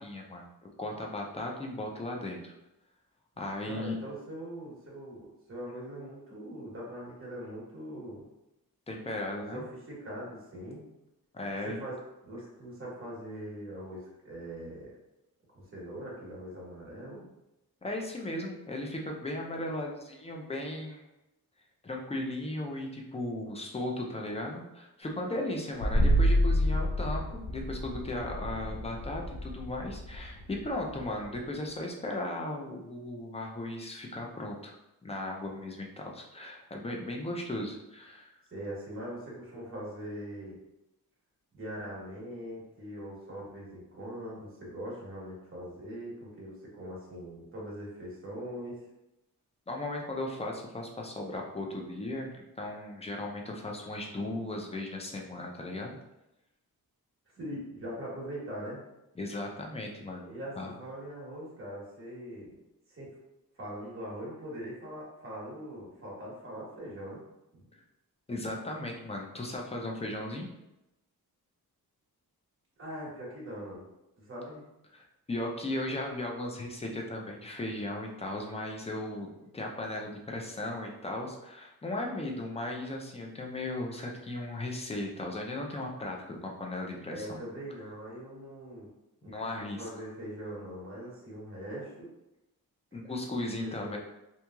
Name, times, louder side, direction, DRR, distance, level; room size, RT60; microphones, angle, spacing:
voice 1, 0.0-2.5 3.4-4.0 8.9-9.6 11.3-11.8 17.8-21.0 21.8-34.7 35.0-38.3 49.7-56.0 59.2-60.3 60.6-60.8 68.3-70.5 74.9-79.3 79.5-87.4 89.3-89.8 92.9-94.0, left 1 dB, 15° left, 0 dB, 0.4 m, -36 dB
voice 2, 3.6-8.2 9.5-10.9 11.6-14.9 15.5-17.3 38.5-40.6 41.5-48.8 54.5-54.6 57.4-58.8 60.2-62.6 62.9-63.1 63.6-67.2 67.5-67.6 72.8-73.8 74.2-74.6 87.1-88.9 89.2-92.1 93.6-94.0, equal, 35° right, -6 dB, 1.2 m, -42 dB
sound 1, 25.8-31.4, equal, 75° left, 0.5 m, -29 dB
2.9 x 2.7 x 2.3 m, 0.93 s
wide cardioid pair, 120°, 37 cm